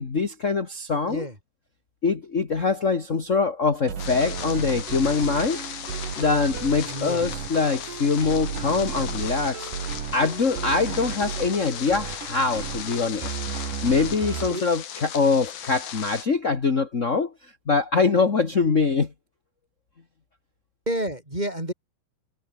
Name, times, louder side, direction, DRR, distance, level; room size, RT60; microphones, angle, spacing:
voice 1, 0.0-1.3 2.0-5.6 6.2-9.7 10.1-13.3 13.8-19.1, left 4 dB, 35° left, 1.3 m, -23 dB
voice 2, 1.0-1.3 6.8-7.3 14.5-14.6 20.9-21.7, right 1 dB, 10° right, 6.8 m, -30 dB
sound 1, 3.9-14.5, right 8 dB, 60° right, 4.3 m, -34 dB
sound 2, 4.0-16.2, left 9 dB, 75° left, 4.4 m, -37 dB
omnidirectional pair, 4.4 m